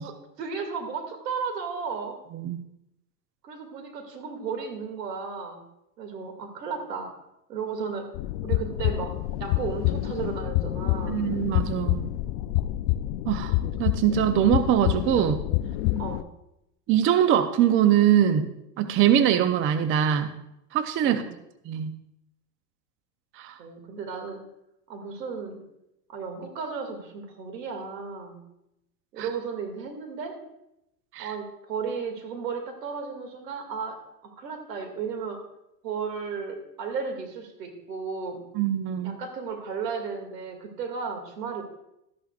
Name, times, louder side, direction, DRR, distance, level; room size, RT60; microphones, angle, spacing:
voice 1, 0.0-2.2 3.4-5.7 6.0-7.2 7.5-8.1 8.4-11.3 16.0-16.3 21.0-21.3 23.6-24.4 24.9-25.6 26.1-28.5 29.1-30.4 31.2-35.4 35.8-38.4 39.0-41.6, right 5 dB, 90° right, 5 dB, 2.4 m, -34 dB
sound 1, 8.1-16.2, left 15 dB, 50° left, 0.5 m, -27 dB
voice 2, 11.1-12.1 13.3-13.5 13.8-15.4 16.9-18.5 18.8-20.3 20.7-21.2 21.7-21.9 23.4-23.6 29.2-29.3 31.1-31.3 38.6-39.2, right 10 dB, 25° right, 10 dB, 0.6 m, -22 dB
13.0 x 11.0 x 2.4 m, 0.84 s
hypercardioid pair, 115°, 48 cm